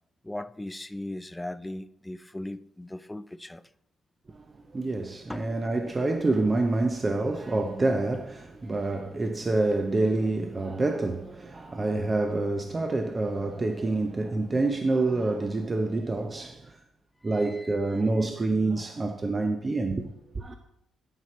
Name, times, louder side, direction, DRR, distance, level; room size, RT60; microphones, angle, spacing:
voice 1, 0.2-3.6 5.3-5.5 9.2-9.3 17.2-18.0, left 1 dB, 10° left, 0.4 m, -38 dB
voice 2, 4.3-16.8 17.2-20.6, right 2 dB, 30° right, 0.7 m, -27 dB
11.5 x 5.8 x 4.3 m
cardioid pair, 90°, 0 cm